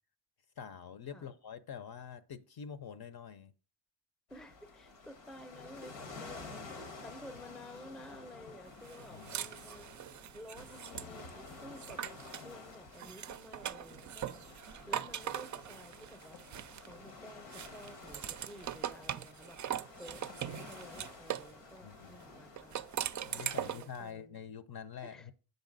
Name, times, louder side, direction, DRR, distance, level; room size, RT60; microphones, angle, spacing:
voice 1, 0.6-3.5 9.1-9.6 21.8-22.2 23.2-25.3, left 7 dB, 50° left, 0.8 m, -46 dB
sound 1, 4.3-23.8, left 3 dB, 85° left, 1.5 m, -51 dB
voice 2, 4.3-9.9 10.3-12.0 12.4-16.4 16.8-22.9 23.3-24.4 25.0-25.3, equal, ahead, 0.6 m, -53 dB
sound 2, 8.8-12.5 12.9-17.1 17.5-21.5 22.6-24.0, right 10 dB, 40° right, 0.4 m, -41 dB
7.0 x 5.4 x 4.0 m
supercardioid pair, 60°, 48 cm